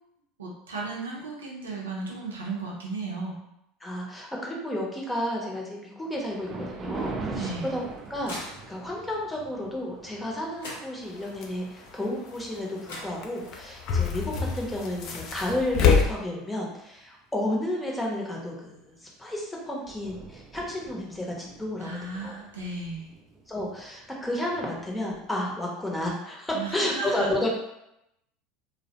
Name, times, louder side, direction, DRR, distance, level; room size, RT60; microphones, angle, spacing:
voice 1, 0.4-3.4 7.3-7.8 21.8-23.1 26.5-27.3, right 3 dB, 90° right, -3 dB, 0.6 m, -35 dB
voice 2, 3.8-7.8 8.1-22.4 23.5-27.5, left 1 dB, 10° left, -2 dB, 0.7 m, -32 dB
Thunder, 6.1-14.7 15.2-15.4 16.1-16.2 16.6-16.7 18.8-19.1 19.4-19.5 19.6-25.6, right 3 dB, 35° right, 0.4 m, -43 dB
sound 1, 7.4-9.1 10.2-10.3 10.6-11.4 12.5-12.6 12.8-13.7, left 1 dB, 80° left, 0.8 m, -43 dB
sound 2, 11.4-11.5 12.9-13.0 13.2-13.3 13.5-16.1, left 5 dB, 55° left, 0.4 m, -24 dB
2.3 x 2.1 x 2.8 m, 0.83 s
hypercardioid pair, 80°, 0 cm